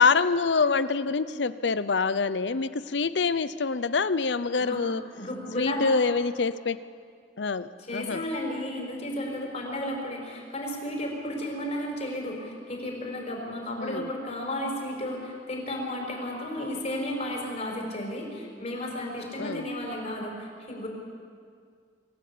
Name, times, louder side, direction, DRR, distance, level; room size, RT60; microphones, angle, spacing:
voice 1, 0.0-5.0 5.6-6.8 7.4-8.2 13.8-14.1 19.4-19.7, left 4 dB, 70° left, 15 dB, 0.7 m, -25 dB
voice 2, 5.1-6.0 7.9-20.9, left 1 dB, 40° left, 0 dB, 5.4 m, -33 dB
24.5 x 14.5 x 8.6 m, 2.1 s
head